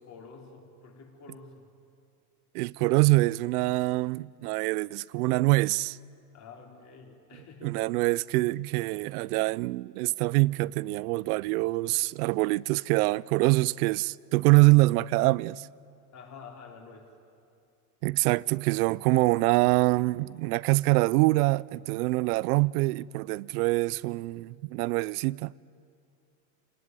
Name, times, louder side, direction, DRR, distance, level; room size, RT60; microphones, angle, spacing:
voice 1, 0.0-1.7 6.3-7.8 16.1-17.1, left 5 dB, 35° left, 3.9 m, -48 dB
voice 2, 2.5-6.0 7.6-15.7 18.0-25.5, right 22 dB, 75° right, 0.5 m, -25 dB
25.0 x 18.5 x 9.6 m
supercardioid pair, 130°, 46 cm